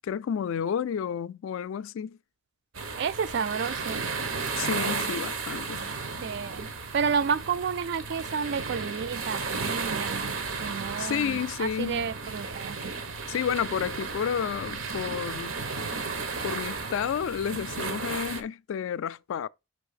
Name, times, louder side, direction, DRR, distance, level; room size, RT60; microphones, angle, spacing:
voice 1, 0.0-2.2 4.6-5.8 11.0-12.1 13.3-15.5 16.4-19.5, left 8 dB, 75° left, 0.3 m, -31 dB
sound 1, 2.7-18.4, right 4 dB, 85° right, 1.1 m, -34 dB
voice 2, 3.0-4.0 6.2-6.7 6.9-10.3 10.6-12.8, right 6 dB, 55° right, 0.4 m, -30 dB
5.4 x 3.4 x 5.6 m
head